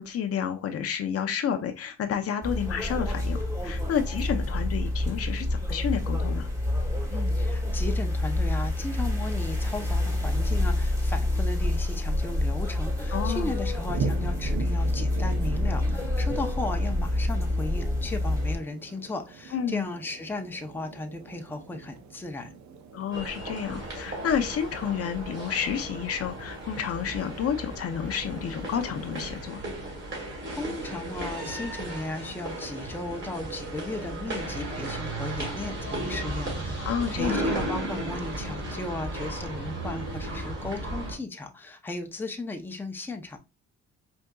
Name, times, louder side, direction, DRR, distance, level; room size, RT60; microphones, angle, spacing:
voice 1, 0.0-6.5 13.1-13.5 19.5-19.8 22.9-29.6 36.8-37.4, left 8 dB, 50° left, 0.5 m, -30 dB
sound 1, 2.4-18.6, left 1 dB, 10° right, 1.1 m, -27 dB
voice 2, 7.1-22.5 30.1-43.4, left 2 dB, 5° left, 0.6 m, -36 dB
sound 2, 12.1-29.4, right 5 dB, 65° right, 0.7 m, -42 dB
sound 3, 23.1-41.1, right 1 dB, 40° right, 1.9 m, -35 dB
4.5 x 2.6 x 2.2 m
cardioid pair, 90°, 30 cm